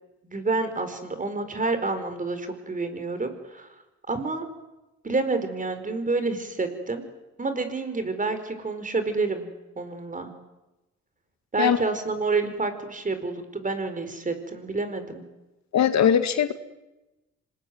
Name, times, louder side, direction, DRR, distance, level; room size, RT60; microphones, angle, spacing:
voice 1, 0.2-3.7 4.1-4.5 5.0-7.0 7.4-10.3 11.5-15.2, right 3 dB, 25° right, 9 dB, 4.7 m, -28 dB
voice 2, 15.7-16.5, left 8 dB, 65° left, 9 dB, 1.9 m, -20 dB
26.0 x 20.5 x 9.4 m, 1.0 s
cardioid pair, 90°, 30 cm